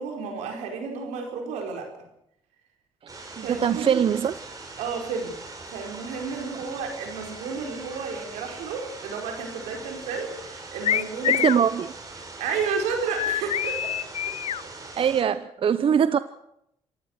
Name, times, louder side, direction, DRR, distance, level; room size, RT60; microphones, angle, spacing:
voice 1, 0.0-1.9 3.4-4.0 4.8-5.4 5.7-11.4 12.4-13.9, right 5 dB, 90° right, 3 dB, 5.1 m, -32 dB
sound 1, 3.1-15.2, right 3 dB, 30° right, 5.4 m, -41 dB
voice 2, 3.4-4.3 11.3-11.9 15.0-16.2, right 8 dB, 50° right, 14 dB, 0.8 m, -22 dB
sound 2, 10.8-11.6 13.1-14.6, left 10 dB, 60° left, 0.7 m, -25 dB
26.5 x 15.5 x 6.6 m, 0.78 s
supercardioid pair, 70°, 12 cm